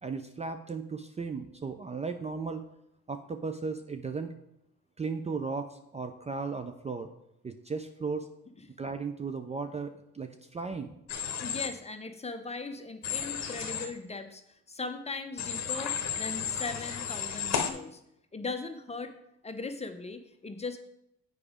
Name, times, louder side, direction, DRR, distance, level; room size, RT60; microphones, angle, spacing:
voice 1, 0.0-2.7 3.1-4.3 5.0-7.1 7.4-8.3 8.8-10.9, right 4 dB, 20° right, 7 dB, 0.4 m, -36 dB
Human voice / Train, 11.1-11.7 13.0-13.9 15.4-17.7, left 7 dB, 60° left, 0.9 m, -33 dB
voice 2, 11.4-18.0 18.3-19.2 19.4-20.8, left 3 dB, 20° left, 7 dB, 0.8 m, -39 dB
7.0 x 4.9 x 5.0 m, 0.77 s
cardioid pair, 90°, 30 cm